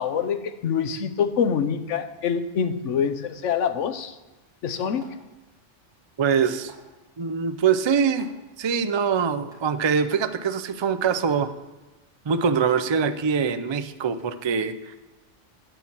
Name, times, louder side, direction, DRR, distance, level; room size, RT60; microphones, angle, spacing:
voice 1, 0.0-4.1 4.6-5.2, left 7 dB, 85° left, 10 dB, 1.1 m, -25 dB
sound 1, 4.8-5.3 6.4-6.9 8.0-8.2 9.0-9.1 9.5-9.6 10.0-10.2 11.1-11.4 12.5-12.8, right 2 dB, 5° right, 3.2 m, -49 dB
voice 2, 6.2-6.7 7.2-8.3 8.6-11.5 12.3-15.0, right 6 dB, 50° right, 10 dB, 0.3 m, -23 dB
9.1 x 5.9 x 7.0 m, 1.1 s
omnidirectional pair, 1.2 m